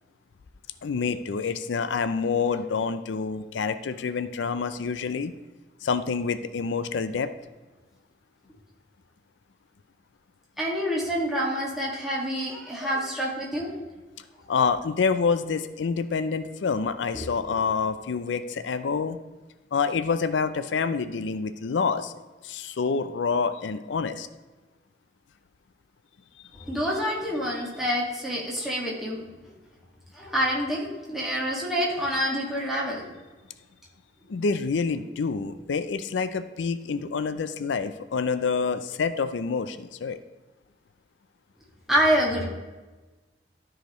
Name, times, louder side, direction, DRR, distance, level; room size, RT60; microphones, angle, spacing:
voice 1, 0.8-5.3 5.8-7.3 14.5-19.2 19.7-22.1 22.4-24.3 34.3-40.2, left 5 dB, 85° left, 11 dB, 0.4 m, -27 dB
voice 2, 10.6-13.7 17.1-17.2 26.6-29.2 30.1-33.1 41.9-42.4, equal, ahead, -5 dB, 1.7 m, -27 dB
13.0 x 5.0 x 3.0 m, 1.2 s
head